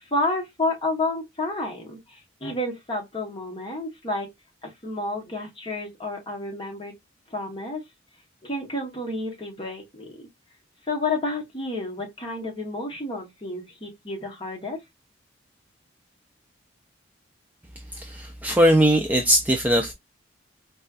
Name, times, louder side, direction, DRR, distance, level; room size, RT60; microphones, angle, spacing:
voice 1, 0.1-4.3 4.6-6.9 7.3-7.8 8.4-10.3 10.9-14.8, left 2 dB, 25° left, 1.0 m, -30 dB
voice 2, 17.9-19.9, equal, 10° right, 0.3 m, -20 dB
4.1 x 2.3 x 2.3 m
head